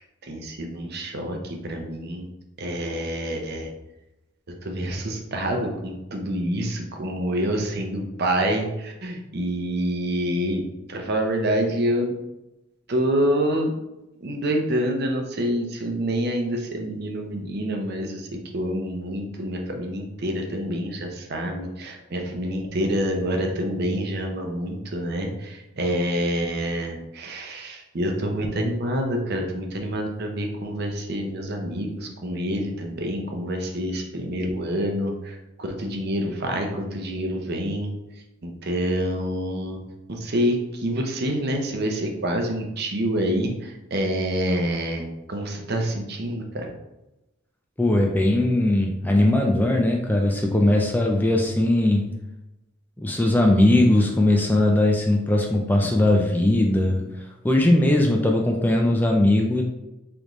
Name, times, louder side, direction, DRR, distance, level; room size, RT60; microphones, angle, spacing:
voice 1, 0.0-2.3 2.6-3.7 4.6-10.6 10.9-12.2 12.9-13.7 14.2-37.9 38.4-39.8 40.1-46.7, equal, 50° right, 3 dB, 0.6 m, -27 dB
voice 2, 47.8-52.1 53.0-57.0 57.4-59.6, left 1 dB, 10° left, 1 dB, 0.3 m, -19 dB
3.8 x 3.3 x 3.0 m, 0.97 s
head